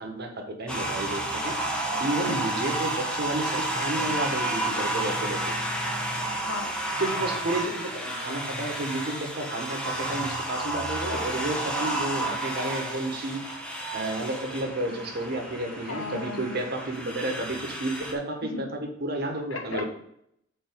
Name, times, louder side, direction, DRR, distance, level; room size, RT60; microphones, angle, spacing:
voice 1, 0.0-1.6 2.0-5.5 7.0-13.4 13.9-19.9, right 1 dB, 55° right, 1.4 m, -31 dB
sound 1, 0.7-18.1, right 1 dB, 5° left, 1.2 m, -31 dB
voice 2, 6.2-6.7 15.9-16.6 18.4-18.7 19.5-19.9, left 3 dB, 85° left, 1.0 m, -36 dB
7.0 x 4.4 x 4.7 m
head